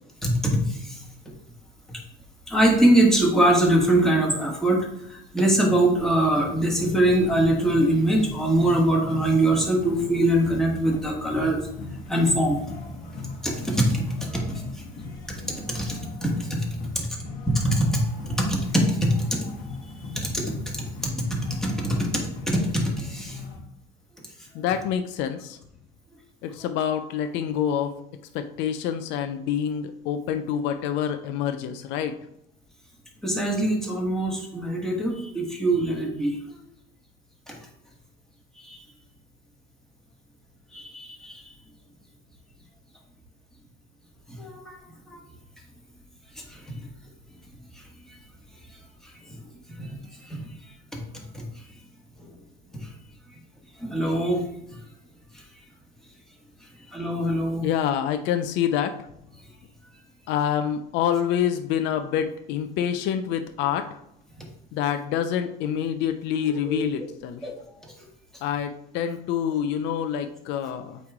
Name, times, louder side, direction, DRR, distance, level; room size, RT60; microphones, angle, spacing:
voice 1, 0.2-1.0 1.9-2.0 2.5-11.6 12.1-12.6 13.4-14.4 15.6-16.9 17.5-18.0 18.4-19.4 20.1-20.9 21.3-23.4 33.2-36.6 37.5-37.6 38.6-38.8 40.7-41.4 44.3-44.7 45.1-45.2 46.5-46.6 49.3-49.4 49.8-50.4 50.9-51.0 51.3-51.4 53.8-54.4 56.9-57.7 66.5-66.8 67.4-67.5, right 1 dB, ahead, -2 dB, 1.4 m, -23 dB
sound 1, 5.9-23.6, left 3 dB, 45° left, 2.0 m, -39 dB
voice 2, 24.5-25.6 26.4-27.9 28.3-32.1 57.6-58.9 60.3-63.9 64.7-67.4 68.4-71.0, left 9 dB, 60° left, 8 dB, 0.5 m, -27 dB
8.3 x 3.2 x 3.6 m, 0.79 s
cardioid pair, 135°, 21 cm